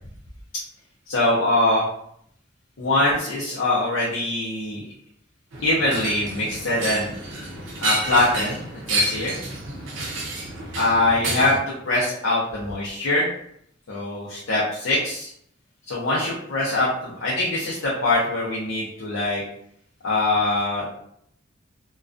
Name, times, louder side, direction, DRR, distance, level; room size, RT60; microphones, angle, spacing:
voice 1, 1.1-1.8 2.8-4.8 5.6-7.1 7.8-9.4 10.7-13.3 13.9-15.3 15.9-19.4 20.0-20.9, left 2 dB, 85° left, -7 dB, 0.6 m, -23 dB
sound 1, 5.5-11.6, right 1 dB, 65° right, 0.5 m, -29 dB
2.3 x 2.2 x 2.4 m, 0.68 s
head